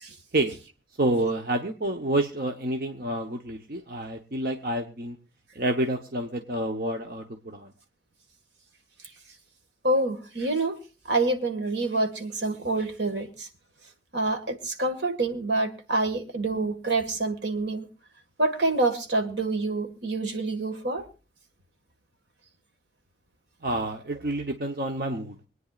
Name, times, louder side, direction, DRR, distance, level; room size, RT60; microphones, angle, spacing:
voice 1, 1.0-5.2 5.5-7.7 23.6-25.4, right 1 dB, 55° right, 4 dB, 1.0 m, -28 dB
voice 2, 9.8-10.8 11.1-13.3 14.1-17.8 18.4-21.0, right 2 dB, 75° right, 6 dB, 1.8 m, -27 dB
25.0 x 9.5 x 2.4 m, 0.33 s
head